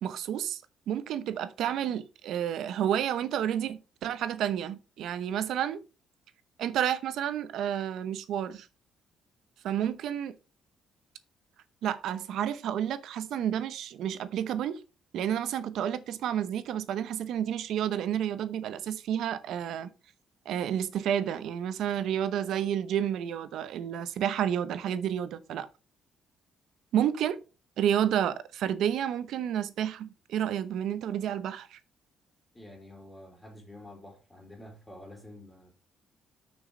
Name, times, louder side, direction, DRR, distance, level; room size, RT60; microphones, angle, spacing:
voice 1, 0.0-5.8 6.6-8.7 9.6-10.3 11.8-14.8 15.1-19.9 20.4-25.7 26.9-27.4 27.8-31.8, right 10 dB, 75° right, 0.8 m, -30 dB
voice 2, 32.5-35.7, left 1 dB, 10° left, 3.0 m, -48 dB
6.3 x 6.1 x 4.9 m
cardioid pair, 120°, 0 cm